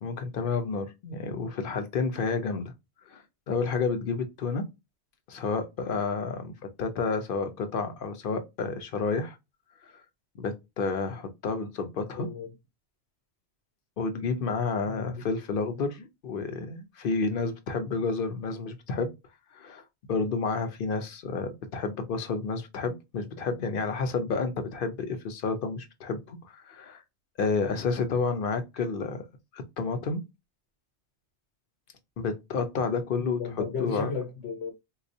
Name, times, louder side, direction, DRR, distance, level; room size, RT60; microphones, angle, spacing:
voice 1, 0.0-2.7 3.1-4.6 5.3-6.5 6.8-9.4 9.8-10.0 10.4-12.3 14.0-19.1 19.5-19.8 20.1-27.0 27.4-29.2 29.5-30.2 32.2-34.1, left 4 dB, 55° left, 0.8 m, -30 dB
voice 2, 12.2-12.5 14.9-15.2 33.2-34.7, left 5 dB, 75° left, 1.1 m, -34 dB
4.2 x 2.3 x 2.6 m
omnidirectional pair, 1.2 m